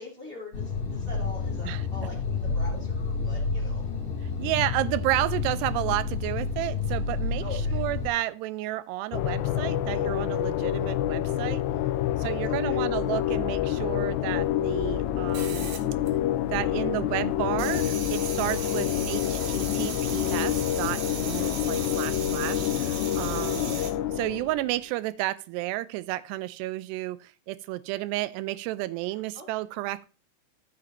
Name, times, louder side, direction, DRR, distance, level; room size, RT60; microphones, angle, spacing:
voice 1, 0.0-3.8 7.4-7.8 12.5-12.8 23.2-23.9 29.3-29.5, left 2 dB, 15° right, -2 dB, 2.3 m, -43 dB
sound 1, 0.5-8.1, left 4 dB, 45° left, 2.9 m, -30 dB
voice 2, 4.4-7.4 7.7-11.6 12.2-15.7 16.5-23.8 24.2-30.1, right 16 dB, 90° right, 15 dB, 2.7 m, -31 dB
sound 2, 9.1-24.7, left 12 dB, 90° left, 2.8 m, -27 dB
sound 3, 15.3-16.6 16.8-23.9, right 6 dB, 55° right, 2.5 m, -37 dB
13.5 x 6.9 x 3.0 m, 0.34 s
omnidirectional pair, 4.8 m